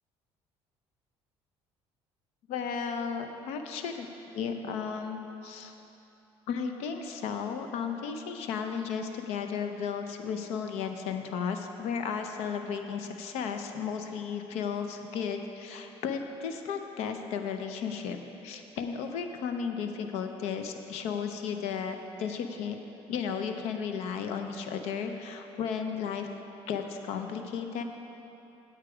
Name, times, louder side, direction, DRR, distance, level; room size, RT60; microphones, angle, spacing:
voice 1, 2.5-4.1 4.3-5.7 6.5-18.2 18.4-22.8 23.1-26.3 26.7-27.8, left 6 dB, 80° left, 6 dB, 0.7 m, -34 dB
9.5 x 8.1 x 4.9 m, 2.9 s
cardioid pair, 120°, 11 cm